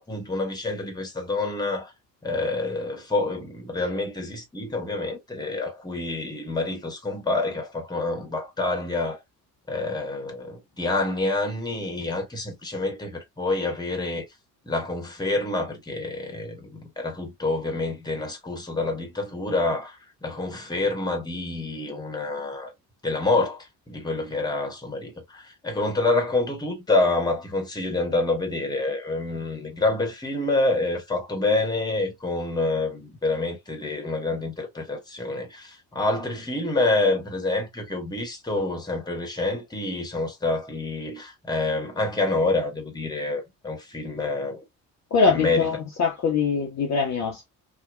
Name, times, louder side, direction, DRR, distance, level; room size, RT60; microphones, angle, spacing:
voice 1, 0.0-1.9 2.2-9.2 9.7-14.2 14.6-22.7 23.0-44.6 45.3-45.8, left 2 dB, 10° left, 1.1 m, -27 dB
voice 2, 45.1-47.5, left 5 dB, 35° left, 0.8 m, -23 dB
2.9 x 2.1 x 2.4 m
figure-of-eight pair, 45°, 47 cm